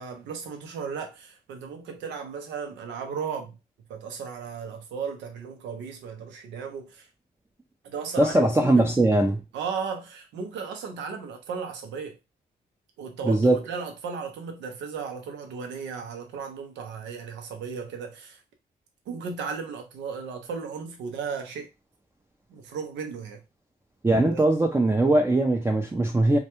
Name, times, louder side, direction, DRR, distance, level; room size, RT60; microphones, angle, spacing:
voice 1, 0.0-3.6 3.9-7.1 7.8-9.0 9.5-12.2 13.0-18.4 19.1-21.7 22.5-23.4 24.3-24.4, right 6 dB, 90° right, 0.6 m, -35 dB
voice 2, 8.2-9.4 13.2-13.6 24.0-26.4, right 2 dB, 15° right, 0.4 m, -20 dB
2.2 x 2.2 x 2.9 m
supercardioid pair, 55°, 18 cm